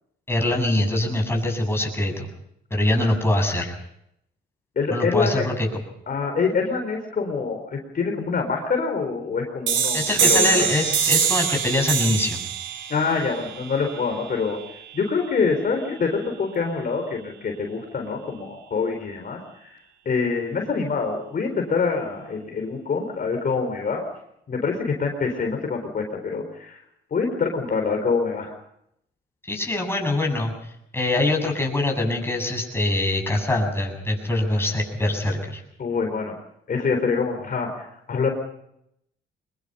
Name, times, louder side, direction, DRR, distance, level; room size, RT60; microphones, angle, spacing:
voice 1, 0.3-2.3 2.7-3.7 4.9-5.7 9.9-12.4 29.5-30.5 30.9-35.6, left 1 dB, 10° left, 2 dB, 7.5 m, -23 dB
voice 2, 4.8-5.4 6.1-10.7 12.9-14.6 14.9-19.4 20.0-24.0 24.5-26.8 27.1-28.5 35.8-36.3 36.7-37.7 38.1-38.3, left 4 dB, 45° left, 3 dB, 4.4 m, -25 dB
sound 1, 9.7-15.1, right 7 dB, 65° right, 3.5 m, -24 dB
24.0 x 21.5 x 5.6 m, 0.77 s
cardioid pair, 90°, 20 cm